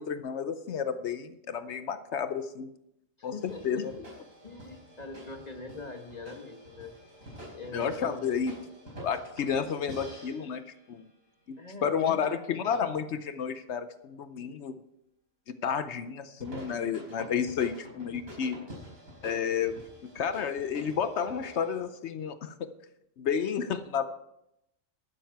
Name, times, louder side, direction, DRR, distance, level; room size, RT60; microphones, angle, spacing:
voice 1, 0.0-2.7 3.2-4.0 7.7-8.5 9.0-10.6 10.9-11.1 11.5-14.8 15.6-18.6 19.2-22.7 23.2-24.0, left 7 dB, 65° left, 12 dB, 0.9 m, -31 dB
voice 2, 3.2-3.6 4.4-6.9 7.5-8.4 11.6-12.7, left 3 dB, 30° left, 4 dB, 1.3 m, -43 dB
sound 1, 3.4-11.1 16.4-21.8, equal, 85° right, 5.4 m, -48 dB
12.0 x 9.7 x 4.6 m, 0.83 s
omnidirectional pair, 1.4 m